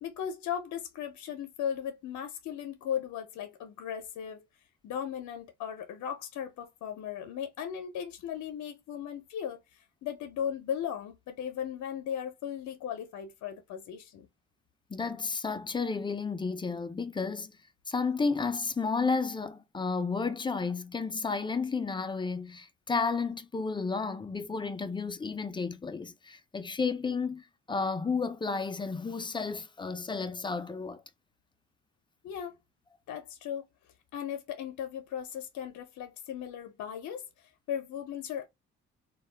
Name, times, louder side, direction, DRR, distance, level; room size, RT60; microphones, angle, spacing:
voice 1, 0.0-4.5 4.8-14.3 32.2-32.6 33.1-33.7 34.1-38.5, left 9 dB, 70° left, 0.6 m, -37 dB
voice 2, 14.9-17.5 17.9-31.0, left 4 dB, 15° left, 0.4 m, -32 dB
2.3 x 2.0 x 3.2 m
cardioid pair, 90°, 30 cm